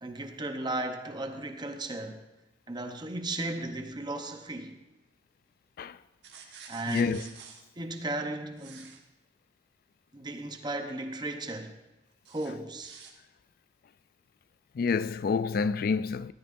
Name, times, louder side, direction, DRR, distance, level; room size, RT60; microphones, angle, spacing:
voice 1, 0.0-2.3 2.7-4.8 6.7-7.3 7.8-9.0 10.1-11.8 12.3-13.0, right 2 dB, 25° right, 0.8 m, -35 dB
sound 1, 6.2-7.6 8.6-9.0 12.3-13.1, right 6 dB, 75° right, 1.4 m, -49 dB
voice 2, 6.9-7.2 14.8-16.3, left 5 dB, 55° left, 0.3 m, -28 dB
13.5 x 13.0 x 2.6 m
head